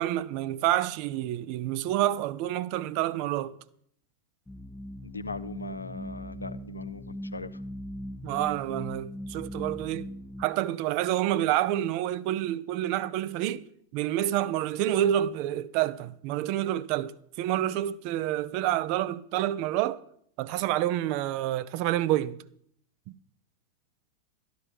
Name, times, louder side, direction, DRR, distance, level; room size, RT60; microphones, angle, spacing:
voice 1, 0.0-3.6 8.2-10.1 10.4-13.7 13.9-20.0 20.4-22.4, right 13 dB, 45° right, 0.5 m, -28 dB
sound 1, 4.5-10.5, left 1 dB, 10° left, 0.4 m, -39 dB
voice 2, 5.0-7.6, left 3 dB, 80° left, 0.6 m, -40 dB
13.0 x 10.5 x 4.9 m
figure-of-eight pair, 90°, 0 cm